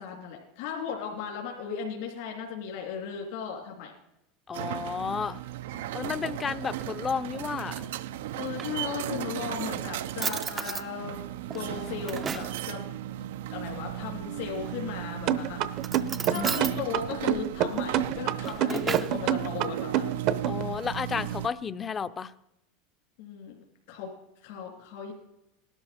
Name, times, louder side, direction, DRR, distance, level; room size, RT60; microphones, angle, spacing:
voice 1, 0.0-3.9 6.0-6.1 8.4-11.2 11.5-12.8 13.5-15.6 16.3-20.1 23.2-23.5 23.9-24.1 24.4-25.1, left 7 dB, 70° left, -1 dB, 3.1 m, -36 dB
voice 2, 4.5-5.4 5.9-7.9 16.3-16.5 20.5-22.3, left 6 dB, 25° left, 14 dB, 0.5 m, -32 dB
sound 1, 4.5-21.5, right 12 dB, 85° right, 0.5 m, -36 dB
Drawer open or close, 8.3-9.3 9.8-9.9 10.2-10.9 11.5-12.6 14.5-15.0 15.8-16.8 18.2-19.2, right 6 dB, 25° right, 0.4 m, -35 dB
sound 2, 15.3-20.6, right 11 dB, 55° right, 0.7 m, -26 dB
18.5 x 12.5 x 4.3 m, 0.87 s
supercardioid pair, 125°, 0 cm